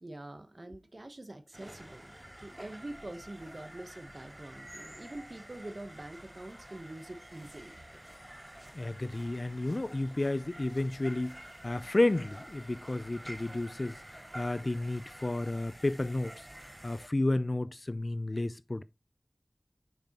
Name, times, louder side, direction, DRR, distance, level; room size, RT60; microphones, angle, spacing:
voice 1, 0.0-7.8, right 1 dB, 55° right, 1.0 m, -45 dB
sound 1, 1.5-17.1, right 1 dB, 15° right, 0.5 m, -49 dB
voice 2, 8.7-11.4 11.6-16.3 16.8-18.8, left 2 dB, 50° left, 0.4 m, -31 dB
6.8 x 6.0 x 2.9 m
wide cardioid pair, 50°, 0 cm